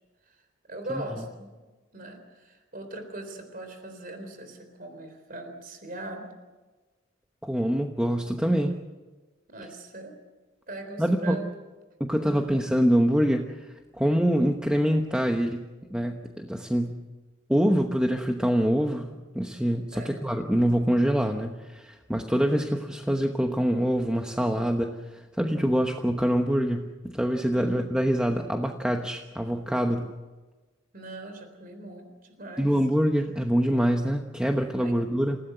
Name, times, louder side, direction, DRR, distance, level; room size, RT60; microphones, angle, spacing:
voice 1, 0.7-1.6 1.9-6.3 9.5-10.2 10.7-11.5 12.2-12.6 19.9-20.1 27.5-27.9 30.9-32.7 34.8-35.0, right 1 dB, 45° right, 7 dB, 3.9 m, -40 dB
voice 2, 7.4-8.7 11.0-11.4 12.0-15.6 15.9-17.0 17.5-19.1 19.3-30.1 32.6-35.4, equal, 5° right, 3 dB, 1.0 m, -25 dB
28.0 x 17.5 x 8.0 m, 1.2 s
head